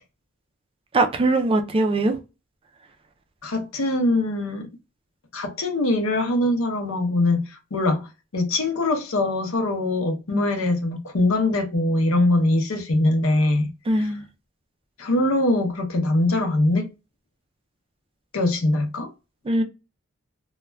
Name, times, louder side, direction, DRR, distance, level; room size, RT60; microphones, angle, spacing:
voice 1, 0.9-2.1 10.3-10.4 13.9-14.2 19.5-19.6, right 2 dB, 25° right, 0.4 m, -21 dB
voice 2, 3.4-4.7 5.3-8.1 8.3-13.7 14.0-14.1 15.0-16.9 18.3-19.1, left 2 dB, 85° left, 0.6 m, -22 dB
2.3 x 2.1 x 3.2 m
head